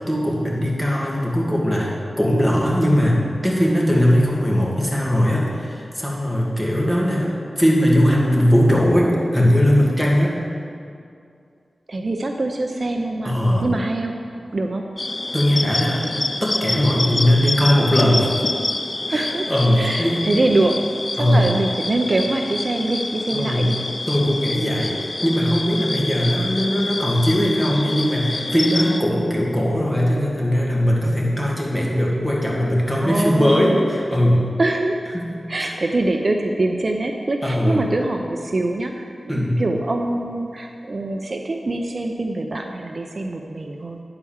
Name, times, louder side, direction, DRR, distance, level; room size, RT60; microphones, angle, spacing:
voice 1, 0.1-1.9 2.2-10.4 13.2-13.7 15.3-16.1 16.4-18.3 19.1-20.3 21.2-21.5 23.3-23.7 24.1-34.5 35.1-35.3 35.6-35.7 37.4-37.8 39.3-39.6, equal, 5° left, -4 dB, 2.2 m, -19 dB
voice 2, 11.9-14.2 14.5-14.8 19.1-19.5 19.8-20.8 21.1-23.7 24.9-25.0 33.0-33.8 34.6-35.0 35.5-44.0, right 2 dB, 50° right, 3 dB, 0.6 m, -24 dB
sound 1, 15.0-29.0, left 2 dB, 40° left, 0.5 m, -27 dB
9.6 x 4.9 x 7.2 m, 2.4 s
wide cardioid pair, 60°, 0 cm